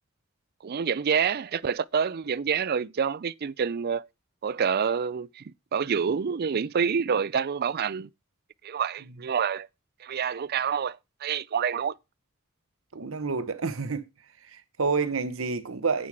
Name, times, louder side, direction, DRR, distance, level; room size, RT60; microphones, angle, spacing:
voice 1, 0.6-4.1 4.4-5.4 5.7-8.1 8.6-9.7 10.0-11.9, right 6 dB, 50° right, 0.5 m, -27 dB
voice 2, 12.9-14.0 14.5-16.1, right 4 dB, 75° right, 0.9 m, -29 dB
10.0 x 7.5 x 4.8 m
head